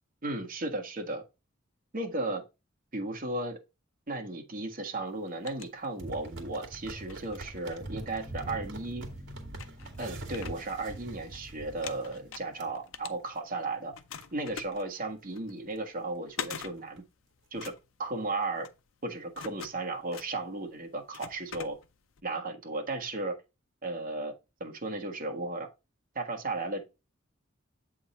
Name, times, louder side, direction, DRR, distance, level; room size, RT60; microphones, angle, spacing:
voice 1, 0.2-1.2 1.9-2.4 2.9-3.6 4.1-9.1 10.0-13.9 14.3-17.0 17.5-17.7 18.0-18.7 19.0-21.8 22.2-23.4 23.8-24.3 24.6-25.7 26.1-26.8, right 2 dB, 45° right, 1.4 m, -35 dB
sound 1, 5.1-6.4 6.8-8.5 9.1-9.2 9.5-11.4 11.7-13.6 13.9-22.2, left 7 dB, 75° left, 0.6 m, -45 dB
sound 2, 6.0-12.2 12.6-12.7 13.2-13.4 13.8-13.9 14.2-14.3 14.8-15.0 15.4-15.5 15.7-15.8 16.1-17.0 17.6-17.7, right 2 dB, 60° right, 1.9 m, -43 dB
sound 3, 7.9-13.2, left 2 dB, 25° right, 2.2 m, -52 dB
7.8 x 3.8 x 4.1 m
head